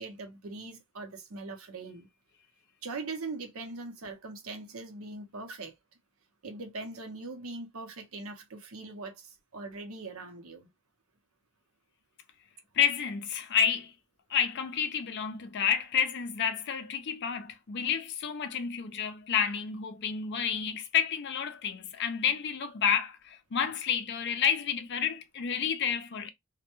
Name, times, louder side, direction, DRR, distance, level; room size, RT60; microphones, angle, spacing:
voice 1, 0.0-2.1 2.8-5.8 6.4-10.7, right 3 dB, 70° right, 0.7 m, -41 dB
voice 2, 12.8-13.9 14.3-26.3, left 8 dB, 50° left, 0.4 m, -30 dB
2.1 x 2.1 x 2.9 m
head